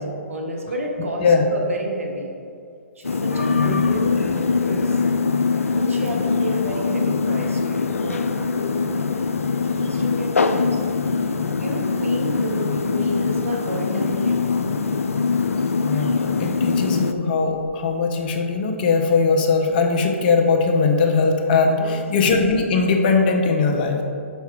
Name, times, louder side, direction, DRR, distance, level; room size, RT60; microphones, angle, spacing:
voice 1, 0.3-2.3 2.9-5.0 5.7-8.8 9.7-10.8 11.6-14.5 21.7-22.0, right 1 dB, 75° right, 1 dB, 1.3 m, -30 dB
sound 1, 3.0-17.1, left 4 dB, 85° left, 0.4 m, -22 dB
voice 2, 3.4-3.9 5.7-5.8 15.9-24.0, left 4 dB, 40° left, 3 dB, 0.9 m, -20 dB
5.7 x 5.7 x 4.5 m, 2.4 s
hypercardioid pair, 130°, 7 cm